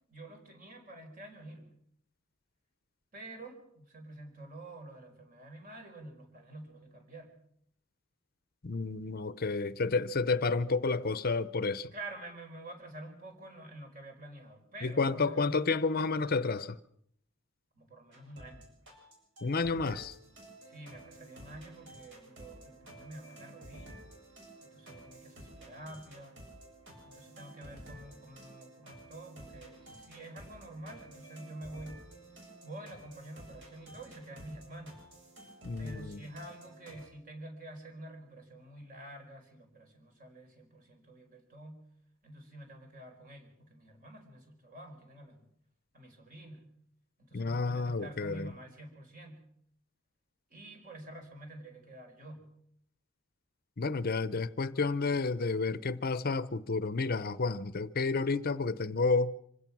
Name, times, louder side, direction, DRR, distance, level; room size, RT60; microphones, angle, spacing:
voice 1, 0.1-1.7 3.1-7.3 11.9-15.6 17.7-18.7 20.7-24.1 24.6-26.4 27.0-32.0 32.6-35.0 35.8-41.8 42.2-45.5 45.9-46.6 47.2-49.4 50.5-52.5, right 1 dB, 45° right, 4.8 m, -48 dB
voice 2, 8.6-11.9 14.8-16.8 19.4-20.1 35.6-36.2 47.3-48.5 53.8-59.3, left 4 dB, 50° left, 0.7 m, -30 dB
sound 1, 18.1-37.1, right 1 dB, 65° right, 7.6 m, -52 dB
25.5 x 16.5 x 6.1 m
head